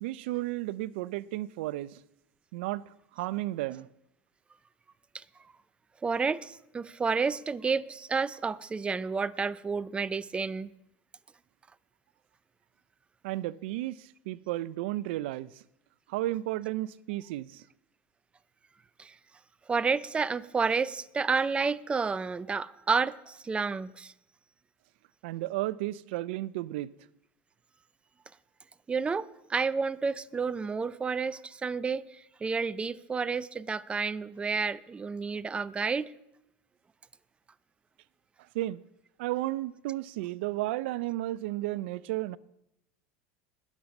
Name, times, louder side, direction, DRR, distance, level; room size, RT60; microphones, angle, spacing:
voice 1, 0.0-2.0 2.5-3.9 13.2-15.6 16.1-17.6 25.2-26.9 38.5-38.8 39.2-42.4, right 16 dB, 75° right, 0.5 m, -33 dB
voice 2, 6.0-10.7 19.0-19.1 19.7-24.1 28.9-36.1, right 5 dB, 20° right, 0.5 m, -30 dB
20.0 x 7.3 x 5.3 m
supercardioid pair, 105°, 6 cm